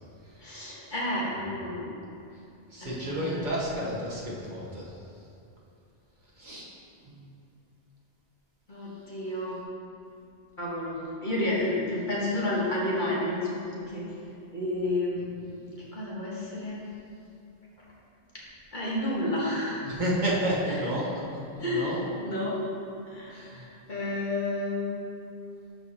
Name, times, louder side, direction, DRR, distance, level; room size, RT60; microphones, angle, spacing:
voice 1, 0.4-1.9 2.8-3.6 8.7-9.6 10.6-14.1 14.5-15.6 15.9-16.9 18.7-19.8 20.7-20.8 21.6-22.6 23.1-24.9, left 1 dB, 45° left, -6 dB, 1.5 m, -31 dB
voice 2, 2.7-4.8 6.4-6.7 7.1-7.2 19.8-21.1 21.5-22.0 23.3-23.6, right 1 dB, 45° right, -6 dB, 1.3 m, -30 dB
12.0 x 4.9 x 2.9 m, 2.6 s
omnidirectional pair, 1.1 m